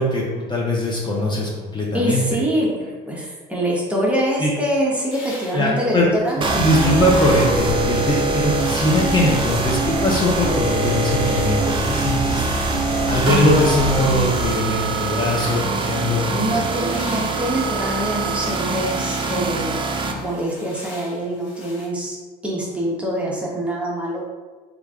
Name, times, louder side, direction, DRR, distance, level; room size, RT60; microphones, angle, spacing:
voice 1, 0.0-2.2 4.4-4.5 5.5-6.1 6.6-12.6 13.1-16.6, left 1 dB, 25° left, -3 dB, 0.6 m, -21 dB
voice 2, 1.9-6.4 16.3-19.8 20.2-22.2 22.4-24.2, equal, 5° right, -4 dB, 0.8 m, -24 dB
sound 1, 5.1-7.8 8.2-9.6 10.0-15.9 16.2-21.9, left 2 dB, 80° left, 1.3 m, -42 dB
sound 2, 6.4-20.1, right 3 dB, 30° right, 0.4 m, -24 dB
sound 3, 6.5-14.5, equal, 45° left, 1.0 m, -28 dB
3.2 x 2.5 x 3.5 m, 1.3 s
cardioid pair, 110°, 17 cm